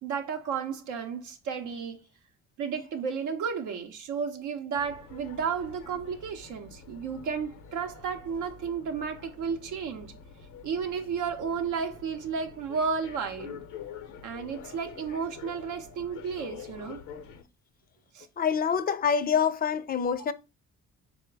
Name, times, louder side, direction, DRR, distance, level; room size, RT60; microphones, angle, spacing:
voice 1, 0.0-2.0 2.6-10.1 10.6-13.6 14.2-17.0 18.1-18.3, right 6 dB, 85° right, 0.6 m, -33 dB
sound 1, 4.7-17.4, left 7 dB, 90° left, 0.7 m, -47 dB
voice 2, 18.4-20.3, left 7 dB, 30° left, 0.4 m, -26 dB
3.8 x 2.1 x 4.5 m
cardioid pair, 90°, 30 cm